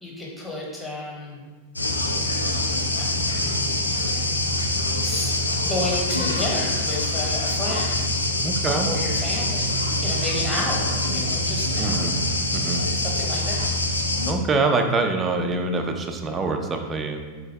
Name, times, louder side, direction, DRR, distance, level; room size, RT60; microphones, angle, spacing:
voice 1, 0.0-1.4 3.0-4.0 5.0-8.1 8.7-9.7 10.0-12.2 12.9-13.7, left 1 dB, 10° left, -4 dB, 1.0 m, -32 dB
sound 1, 1.8-14.3, left 1 dB, 80° left, 0.3 m, -25 dB
voice 2, 8.4-8.9 11.8-12.1 12.5-12.8 14.3-17.2, right 3 dB, 20° right, 5 dB, 0.4 m, -25 dB
3.8 x 2.6 x 3.2 m, 1.5 s
figure-of-eight pair, 90°, 0 cm